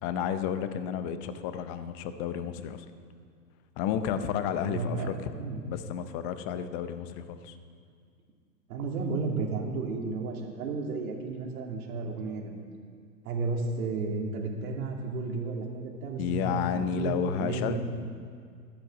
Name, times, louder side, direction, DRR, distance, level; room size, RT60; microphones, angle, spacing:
voice 1, 0.0-2.8 3.8-5.3 5.6-7.5 16.2-17.8, left 8 dB, 20° left, 10 dB, 0.6 m, -31 dB
voice 2, 4.6-5.1 5.4-5.6 8.7-12.6 13.2-17.8, right 3 dB, 55° right, 1 dB, 2.8 m, -33 dB
13.0 x 10.5 x 7.3 m, 2.1 s
hypercardioid pair, 125°, 50 cm